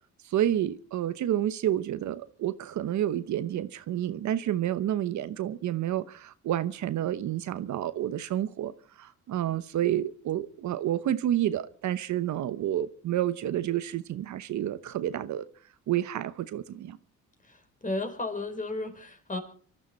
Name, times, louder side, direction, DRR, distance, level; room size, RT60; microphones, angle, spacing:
voice 1, 0.3-8.7 9.0-15.5 15.9-17.0, right 12 dB, 70° right, 1.0 m, -29 dB
voice 2, 17.4-19.4, left 2 dB, 25° left, 4.2 m, -34 dB
24.5 x 13.5 x 4.3 m
cardioid pair, 90°, 30 cm